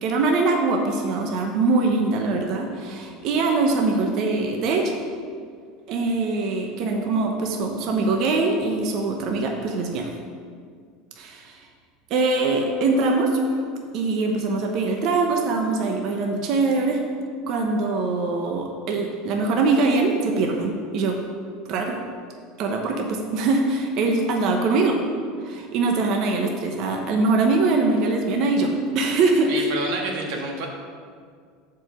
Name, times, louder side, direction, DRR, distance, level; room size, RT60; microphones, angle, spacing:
voice 1, 0.0-5.0 5.9-10.1 11.2-11.6 12.1-13.4 13.9-17.0 17.5-21.2 21.7-22.0 22.6-25.0 25.4-29.7, right 3 dB, 50° right, 2 dB, 0.9 m, -23 dB
voice 2, 29.5-30.7, right 2 dB, 65° right, 0 dB, 1.5 m, -28 dB
7.8 x 4.8 x 6.6 m, 2.1 s
supercardioid pair, 155°, 0 cm